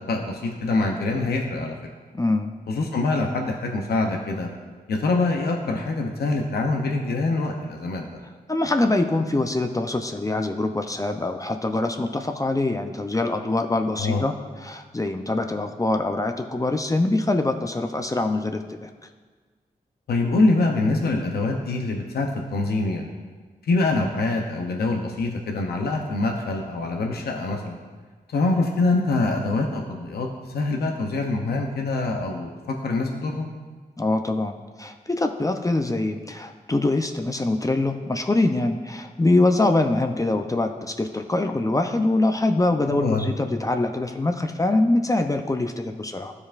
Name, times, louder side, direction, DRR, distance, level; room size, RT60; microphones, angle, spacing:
voice 1, 0.0-1.8 2.7-4.5 4.9-8.1 14.0-14.2 20.1-23.1 23.7-27.8 28.3-33.5 42.9-43.3, left 2 dB, 80° left, 2 dB, 0.7 m, -24 dB
voice 2, 2.1-2.5 8.5-14.3 14.6-18.9 34.0-46.3, left 2 dB, 20° left, 5 dB, 0.6 m, -24 dB
13.0 x 4.8 x 2.5 m, 1.4 s
cardioid pair, 45°, 16 cm